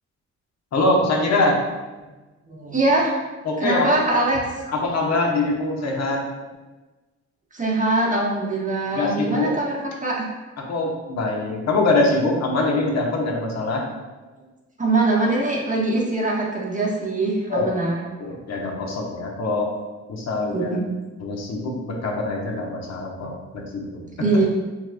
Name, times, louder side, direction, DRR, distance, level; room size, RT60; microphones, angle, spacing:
voice 1, 0.7-1.6 3.4-4.0 4.7-6.2 8.9-9.5 10.6-13.8 17.5-17.7 18.2-19.7 20.1-20.7 21.2-24.0 24.3-24.4, left 2 dB, 60° left, -1 dB, 1.2 m, -23 dB
voice 2, 2.5-3.1 3.6-4.7 7.5-10.3 14.8-18.4 20.5-20.9 24.2-24.5, right 2 dB, 25° right, -3 dB, 1.3 m, -23 dB
6.3 x 3.4 x 2.3 m, 1.2 s
cardioid pair, 75°, 30 cm